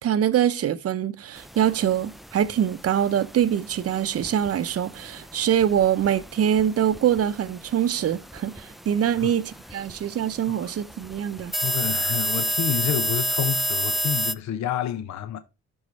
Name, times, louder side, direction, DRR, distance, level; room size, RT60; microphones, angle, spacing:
voice 1, 0.0-11.5, right 9 dB, 50° right, 0.8 m, -24 dB
sound 1, 1.4-14.3, equal, ahead, 0.4 m, -31 dB
voice 2, 11.6-15.4, left 10 dB, 65° left, 0.8 m, -29 dB
11.5 x 4.7 x 3.3 m
cardioid pair, 90°, 30 cm